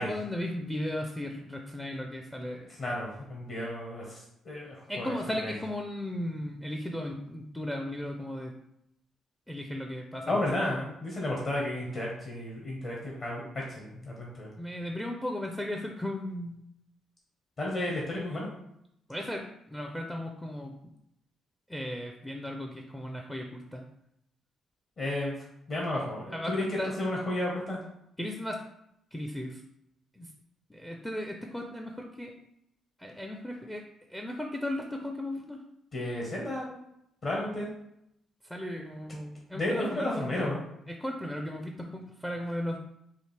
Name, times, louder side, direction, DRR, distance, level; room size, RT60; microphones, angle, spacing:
voice 1, 0.0-2.7 4.9-8.5 9.5-10.4 14.6-16.6 18.3-18.4 19.1-20.9 21.7-23.8 26.3-26.9 28.2-28.6 29.1-29.6 30.1-30.3 30.7-32.3 33.0-33.8 34.1-35.6 38.4-40.5 40.9-42.8, left 1 dB, 5° left, 2 dB, 0.4 m, -36 dB
voice 2, 2.8-5.1 5.4-5.5 10.3-14.5 17.6-18.5 25.0-25.3 25.7-27.8 35.9-36.7 37.2-37.7 39.5-40.6, left 1 dB, 50° left, -3 dB, 1.2 m, -32 dB
4.9 x 2.5 x 3.3 m, 0.79 s
cardioid pair, 90°, 0 cm